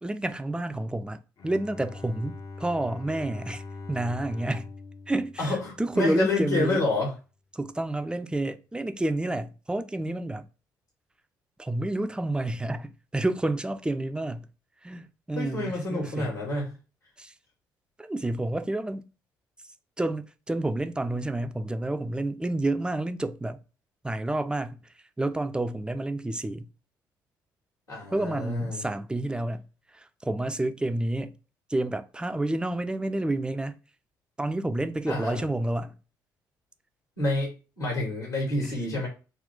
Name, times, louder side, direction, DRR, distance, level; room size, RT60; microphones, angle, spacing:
voice 1, 0.0-4.7 5.1-6.8 7.5-10.5 11.6-14.5 14.8-16.4 17.2-17.3 18.0-19.1 20.0-23.6 24.0-24.8 25.2-26.7 28.1-29.7 29.9-31.4 31.7-33.8 34.4-36.0 38.6-38.7, right 1 dB, 10° right, 0.4 m, -29 dB
Bowed string instrument, 1.4-6.3, left 3 dB, 40° left, 0.6 m, -42 dB
voice 2, 5.4-7.1 15.3-16.8 27.9-28.8 35.1-35.4 37.2-39.1, left 2 dB, 80° left, 2.0 m, -28 dB
3.9 x 2.4 x 3.5 m
figure-of-eight pair, 45°, 10 cm